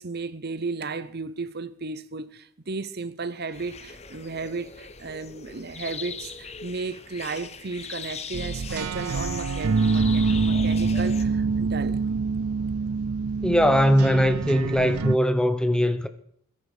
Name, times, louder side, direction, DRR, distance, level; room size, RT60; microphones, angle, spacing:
voice 1, 0.0-12.0, right 4 dB, 45° right, 0.9 m, -34 dB
sound 1, 3.5-11.2, left 6 dB, 30° left, 1.0 m, -40 dB
sound 2, 8.3-15.2, right 4 dB, 85° right, 0.5 m, -25 dB
voice 2, 13.4-16.1, equal, 5° left, 0.9 m, -20 dB
21.5 x 10.5 x 5.1 m
head